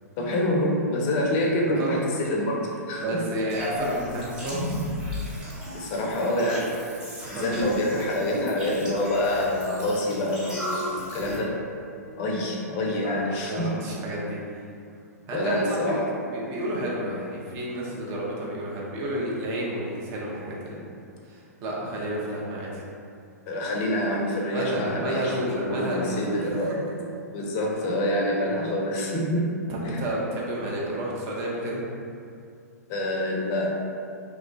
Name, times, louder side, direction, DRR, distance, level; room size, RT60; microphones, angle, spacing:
voice 1, 0.2-2.6 2.9-3.2 5.7-6.7 7.3-11.6 12.2-13.8 15.3-16.1 23.5-26.8 27.3-29.5 29.8-30.0 32.9-33.8, left 1 dB, 35° left, -2 dB, 0.5 m, -26 dB
voice 2, 3.0-4.8 7.3-7.5 9.6-9.9 13.0-14.4 15.3-20.9 21.2-22.8 24.5-26.8 29.7-31.8, right 1 dB, 35° right, -4 dB, 0.6 m, -31 dB
sound 1, 3.5-11.4, equal, 5° right, 0.9 m, -34 dB
2.9 x 2.1 x 2.5 m, 2.5 s
figure-of-eight pair, 110°, 9 cm